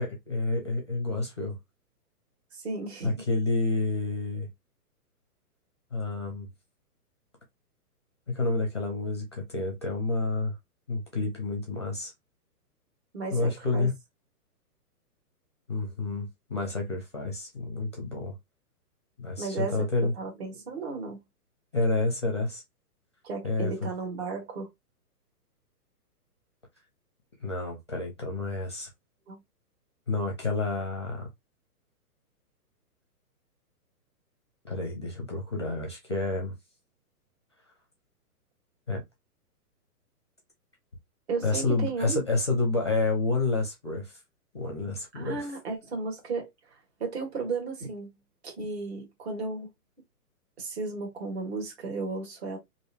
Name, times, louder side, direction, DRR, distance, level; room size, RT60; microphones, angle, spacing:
voice 1, 0.0-1.6 3.0-4.5 5.9-6.5 8.3-10.6 10.9-12.1 13.3-13.9 15.7-18.4 19.2-20.1 21.7-22.6 23.4-23.7 27.4-28.9 30.1-31.3 34.6-36.5 38.9-39.0 41.4-44.2 44.5-45.5, left 3 dB, 20° left, 0.6 m, -29 dB
voice 2, 2.5-3.2 13.1-13.9 19.4-19.9 20.1-21.2 23.2-24.7 29.3-29.4 41.3-42.2 45.1-48.1 48.4-49.7 50.6-52.6, right 3 dB, 40° right, 1.5 m, -34 dB
3.4 x 2.6 x 3.2 m
hypercardioid pair, 175°, 47 cm